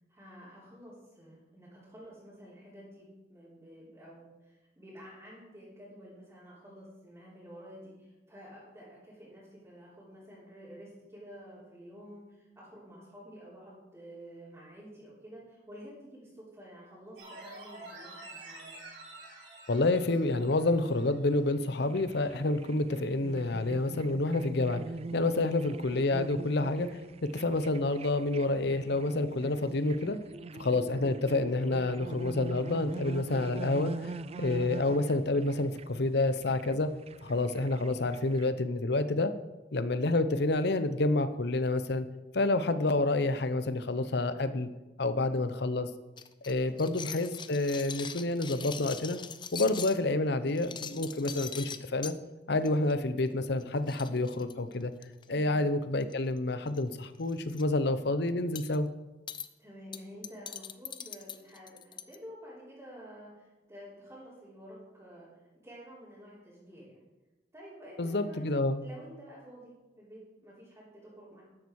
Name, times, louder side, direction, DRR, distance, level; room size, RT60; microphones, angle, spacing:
voice 1, 0.0-18.7 25.3-25.5 37.2-37.5 46.6-46.9 55.3-55.5 59.6-65.3 65.6-67.0 67.5-71.4, equal, 15° right, -9 dB, 3.7 m, -50 dB
sound 1, 17.2-21.4 21.7-21.8, right 2 dB, 90° right, 3.9 m, -49 dB
voice 2, 19.7-24.8 25.1-30.2 30.5-34.1 34.4-36.9 37.2-39.3 39.7-42.1 42.3-44.7 45.0-45.9 46.5-49.2 49.5-52.1 52.5-54.9 55.3-58.9 68.0-68.8, left 2 dB, 65° left, 12 dB, 0.8 m, -29 dB
sound 2, 21.8-38.5, right 3 dB, 35° right, 0.4 m, -43 dB
sound 3, 46.2-50.0 50.5-52.2 52.6-52.9 53.2-53.3 53.6-53.7 53.9-55.2 56.0-56.4 56.7-56.8 57.2-57.6 58.6-58.8 59.3-59.5 59.9-62.2, left 7 dB, 25° left, 0.6 m, -42 dB
12.5 x 10.5 x 4.8 m, 1.1 s
head